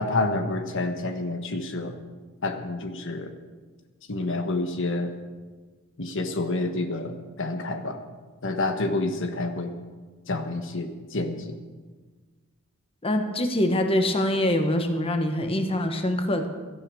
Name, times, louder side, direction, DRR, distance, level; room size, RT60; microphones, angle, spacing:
voice 1, 0.0-2.0 2.4-3.3 4.1-5.1 6.0-8.0 8.4-9.7 10.3-11.6, left 2 dB, 60° left, 6 dB, 1.3 m, -28 dB
voice 2, 13.0-16.5, left 1 dB, 25° left, 5 dB, 1.4 m, -24 dB
17.0 x 13.5 x 6.3 m, 1.4 s
head